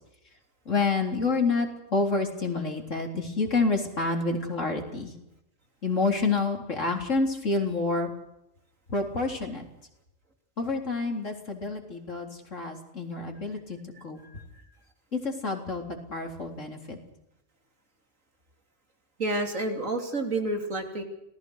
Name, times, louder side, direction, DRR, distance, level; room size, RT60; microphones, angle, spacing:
voice 1, 0.7-5.1 5.8-8.1 8.9-9.6 10.6-14.2 15.1-17.0, left 3 dB, 70° left, 3 dB, 4.2 m, -28 dB
voice 2, 19.2-21.0, right 2 dB, 85° right, 4 dB, 3.6 m, -29 dB
27.0 x 18.5 x 6.5 m, 0.85 s
omnidirectional pair, 1.3 m